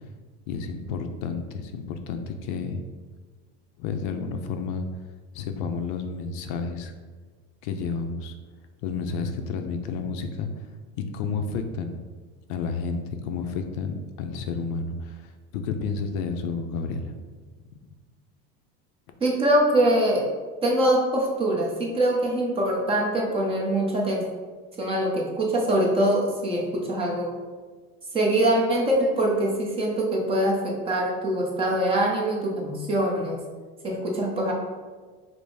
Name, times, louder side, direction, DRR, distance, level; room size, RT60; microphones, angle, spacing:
voice 1, 0.5-2.8 3.8-4.8 5.3-6.9 7.6-8.3 8.8-10.5 10.9-12.0 12.5-17.2, left 5 dB, 60° left, 6 dB, 0.5 m, -31 dB
voice 2, 19.2-20.2 20.6-24.2 24.8-27.4 28.1-33.4 33.8-34.5, right 1 dB, 20° right, -2 dB, 0.6 m, -23 dB
5.2 x 2.0 x 4.7 m, 1.4 s
cardioid pair, 170°, 29 cm